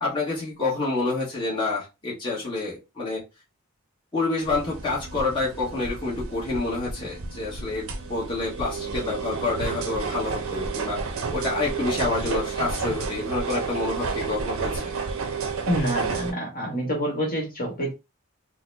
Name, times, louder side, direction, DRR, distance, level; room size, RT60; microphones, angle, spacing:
voice 1, 0.0-3.2 4.1-11.0 11.3-14.9, left 3 dB, 25° left, -7 dB, 1.3 m, -28 dB
sound 1, 4.4-16.3, right 4 dB, 70° right, 0.6 m, -31 dB
voice 2, 15.7-17.9, equal, 45° left, -2 dB, 1.4 m, -27 dB
4.0 x 2.1 x 2.6 m, 0.26 s
head